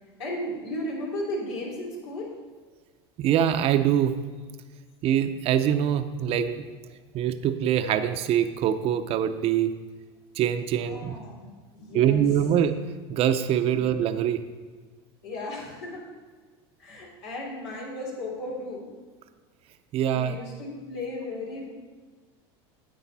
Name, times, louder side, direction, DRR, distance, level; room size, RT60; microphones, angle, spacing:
voice 1, 0.2-2.3 10.7-12.2 13.7-13.9 15.2-16.0 16.8-18.9 20.1-21.7, left 1 dB, 85° left, -2 dB, 3.3 m, -35 dB
voice 2, 3.2-4.2 5.0-6.7 7.1-9.7 10.4-11.2 11.9-12.7 13.1-14.4 19.9-20.4, right 9 dB, 45° right, 9 dB, 0.6 m, -24 dB
10.0 x 7.9 x 4.2 m, 1.4 s
supercardioid pair, 110°, 14 cm